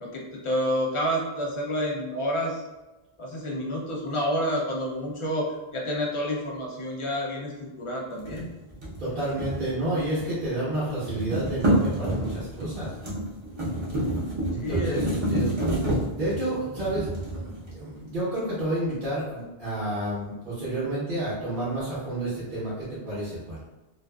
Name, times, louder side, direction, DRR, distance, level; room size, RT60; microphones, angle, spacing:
voice 1, 0.0-2.6 3.2-5.5 5.7-8.5 14.6-15.1, equal, 40° left, -2 dB, 0.4 m, -29 dB
sound 1, 8.2-10.4 10.7-18.0, right 1 dB, 30° right, 0.6 m, -29 dB
voice 2, 9.0-12.9 14.5-15.5 16.2-23.6, right 1 dB, 55° right, -10 dB, 0.9 m, -30 dB
2.4 x 2.4 x 2.2 m, 1.1 s
omnidirectional pair, 1.0 m